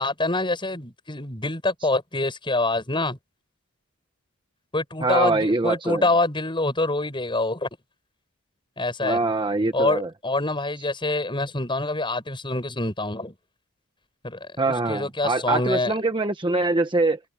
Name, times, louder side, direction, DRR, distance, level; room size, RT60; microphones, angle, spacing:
voice 1, 0.0-3.2 4.7-7.7 8.8-9.2 9.7-13.3 14.2-15.9, left 2 dB, 20° left, 7.9 m, -26 dB
voice 2, 5.0-6.0 9.0-10.1 14.6-17.2, right 2 dB, 20° right, 1.1 m, -23 dB
head